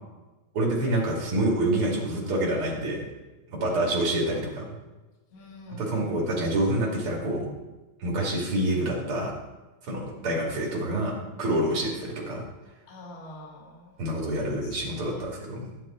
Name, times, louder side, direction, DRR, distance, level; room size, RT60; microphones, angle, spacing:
voice 1, 0.5-3.0 3.5-4.6 5.7-7.5 8.0-9.3 9.8-11.1 11.4-12.4 14.0-15.6, right 1 dB, 45° right, -2 dB, 3.2 m, -27 dB
voice 2, 3.7-4.0 5.3-6.2 11.7-11.9 12.9-14.0 14.4-15.3, left 2 dB, 45° left, -2 dB, 2.6 m, -46 dB
12.0 x 9.4 x 4.4 m, 1.1 s
omnidirectional pair, 3.5 m